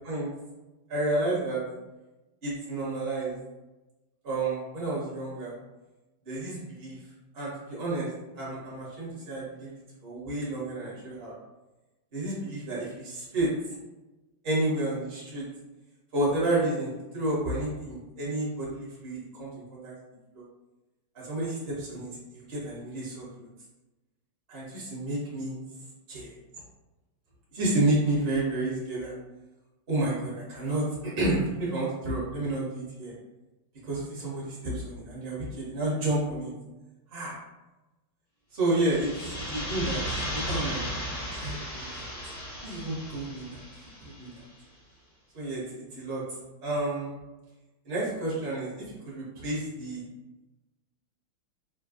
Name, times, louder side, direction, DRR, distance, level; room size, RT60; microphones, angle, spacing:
voice 1, 0.9-1.6 2.4-3.3 4.2-5.5 6.2-7.0 7.3-9.7 10.0-11.3 12.1-13.5 14.4-15.4 16.1-19.9 20.3-20.4 21.2-23.5 24.5-25.5 26.1-26.3 27.5-29.1 29.9-30.8 31.2-33.1 33.8-36.5 37.1-37.3 38.5-40.0 40.3-42.1 42.6-43.5 44.0-44.3 45.3-46.2 46.6-47.1 47.8-50.0, right 2 dB, 40° right, -7 dB, 0.9 m, -30 dB
sound 1, 38.7-44.4, equal, 60° left, 0.7 m, -35 dB
3.6 x 2.2 x 2.4 m, 1.1 s
omnidirectional pair, 2.4 m